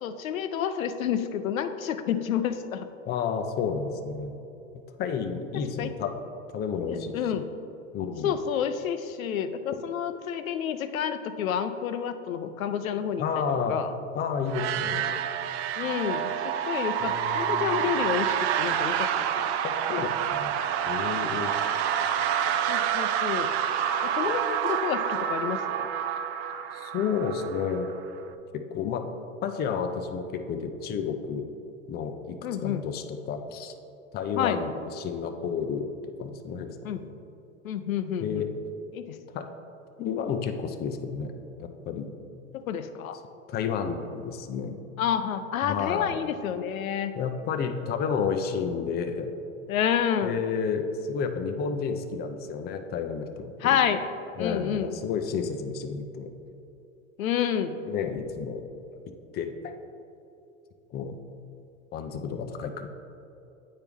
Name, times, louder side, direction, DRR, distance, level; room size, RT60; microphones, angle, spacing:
voice 1, 0.0-2.9 5.8-5.9 6.9-7.5 8.2-13.4 13.7-13.9 15.8-19.5 22.7-23.5 24.0-25.6 32.4-32.8 34.4-34.6 36.8-37.0 37.6-38.4 38.9-39.2 42.7-43.2 45.0-47.1 49.7-50.4 53.6-54.0 54.4-55.0 57.2-57.8, left 8 dB, 90° left, 9 dB, 0.5 m, -29 dB
voice 2, 3.1-4.3 4.7-6.1 6.5-7.4 7.9-8.3 13.2-13.8 14.1-15.2 17.0-18.0 19.6-20.5 20.9-21.5 26.7-27.9 28.5-29.1 29.4-31.5 31.9-33.7 34.1-35.9 36.2-37.1 38.2-38.5 39.3-39.5 40.0-41.3 41.6-42.1 43.5-44.8 45.6-46.2 47.2-49.4 50.2-53.8 54.4-56.3 57.8-58.6 59.3-59.7 60.9-61.2 61.9-62.9, left 6 dB, 25° left, 6 dB, 0.5 m, -31 dB
sound 1, 14.5-28.2, right 9 dB, 55° right, 0.5 m, -28 dB
8.6 x 4.5 x 3.5 m, 2.7 s
hypercardioid pair, 100°, 40 cm